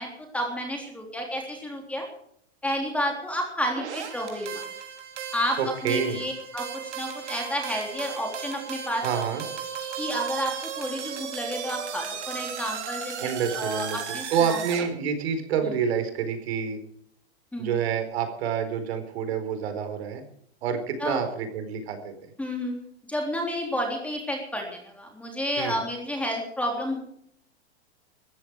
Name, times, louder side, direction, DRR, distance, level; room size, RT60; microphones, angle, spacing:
voice 1, 0.0-2.0 2.6-4.6 5.3-6.7 7.0-9.0 10.0-14.6 15.6-15.7 17.5-17.8 21.0-21.2 22.4-22.8 23.1-27.0, equal, 5° left, 1 dB, 3.5 m, -31 dB
sound 1, 3.8-14.9, right 8 dB, 85° right, 4.4 m, -36 dB
voice 2, 5.6-6.2 9.0-9.4 13.2-16.8 17.6-20.2 20.6-22.1 25.6-25.8, right 7 dB, 65° right, 7 dB, 4.4 m, -28 dB
17.5 x 14.5 x 4.8 m, 0.68 s
supercardioid pair, 160°, 34 cm